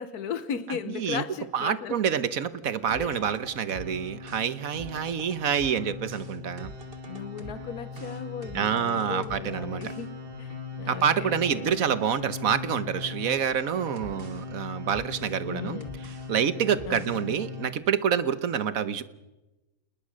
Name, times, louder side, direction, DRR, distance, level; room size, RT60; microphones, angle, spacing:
voice 1, 0.0-2.0 3.0-3.4 7.1-10.1 10.4-11.8 15.5-16.0 16.9-17.3, left 7 dB, 85° left, 13 dB, 1.6 m, -37 dB
voice 2, 0.7-1.2 1.5-6.7 8.5-9.8 10.9-19.0, right 8 dB, 70° right, 15 dB, 1.4 m, -27 dB
sound 1, 2.9-17.7, left 3 dB, 40° right, 2.0 m, -39 dB
28.0 x 20.5 x 6.4 m, 1.0 s
omnidirectional pair, 1.6 m